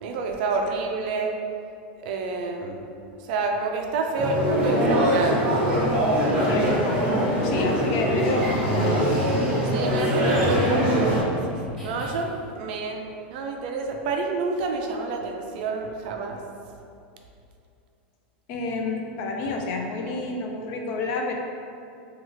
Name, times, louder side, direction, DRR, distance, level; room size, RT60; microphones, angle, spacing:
voice 1, 0.0-1.3 2.0-2.8 3.2-5.4 9.7-11.4 11.8-16.4, right 4 dB, 60° right, 3 dB, 0.3 m, -28 dB
sound 1, 4.2-11.2, equal, 20° right, 0.9 m, -22 dB
voice 2, 6.5-7.0 7.4-9.3 18.5-21.3, left 3 dB, 45° left, 1 dB, 0.4 m, -29 dB
sound 2, 9.7-12.5, right 2 dB, 20° left, 1.4 m, -40 dB
2.7 x 2.3 x 3.0 m, 2.6 s
supercardioid pair, 155°, 6 cm